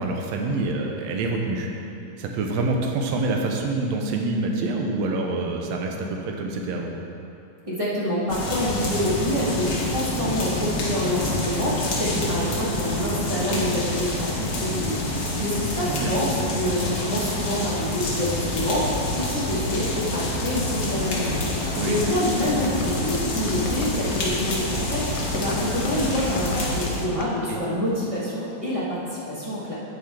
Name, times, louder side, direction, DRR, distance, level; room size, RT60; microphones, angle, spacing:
voice 1, 0.0-1.7 2.2-6.9 15.9-16.1 21.7-22.2 27.1-27.6, right 2 dB, 75° right, 1 dB, 1.9 m, -26 dB
voice 2, 7.6-29.0 29.3-29.7, equal, 30° right, -9 dB, 0.6 m, -27 dB
sound 1, 8.3-27.1, left 2 dB, 60° left, 0.9 m, -27 dB
sound 2, 22.5-24.7 25.2-27.3, left 5 dB, 90° left, 2.0 m, -38 dB
9.9 x 5.4 x 4.3 m, 2.8 s
omnidirectional pair, 3.3 m